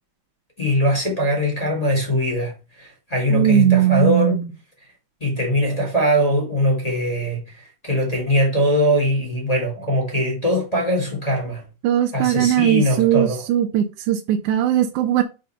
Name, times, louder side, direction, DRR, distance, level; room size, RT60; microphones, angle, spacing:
voice 1, 0.6-2.5 2.8-4.4 5.2-11.6 12.1-13.4, equal, 15° left, 1.5 m, -21 dB
voice 2, 3.3-4.4 11.8-15.2, right 11 dB, 85° right, 2.1 m, -19 dB
5.4 x 3.8 x 5.5 m
omnidirectional pair, 3.4 m